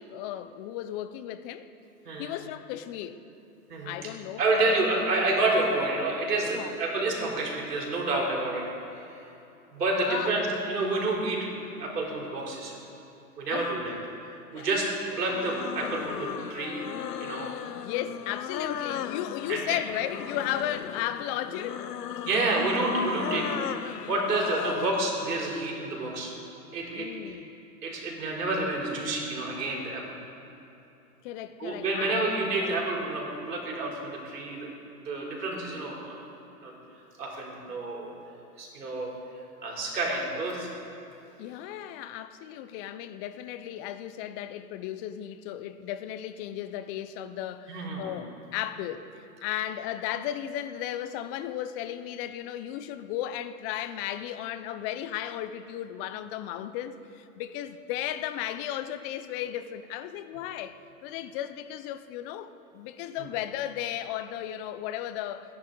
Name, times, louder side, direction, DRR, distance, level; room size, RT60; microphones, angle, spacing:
voice 1, 0.0-1.7 2.2-3.2 3.9-4.8 6.5-6.8 10.1-10.3 13.5-13.7 14.5-14.7 17.7-21.9 27.0-27.5 31.2-32.8 41.4-60.7 61.0-65.5, left 11 dB, 35° left, 11 dB, 0.8 m, -35 dB
voice 2, 4.4-8.7 9.0-9.1 9.7-12.8 13.4-14.0 14.5-14.9 15.2-16.9 17.2-17.5 19.5-19.8 22.2-26.3 26.7-27.1 27.8-30.0 31.6-34.7 35.0-36.2 36.6-36.7 37.2-38.1 38.6-39.1 39.6-40.7 47.7-48.2, right 2 dB, 80° right, -2 dB, 4.3 m, -29 dB
sound 1, 15.1-25.0, left 9 dB, 90° left, 0.7 m, -36 dB
28.5 x 10.5 x 4.0 m, 2.9 s
hypercardioid pair, 115°, 47 cm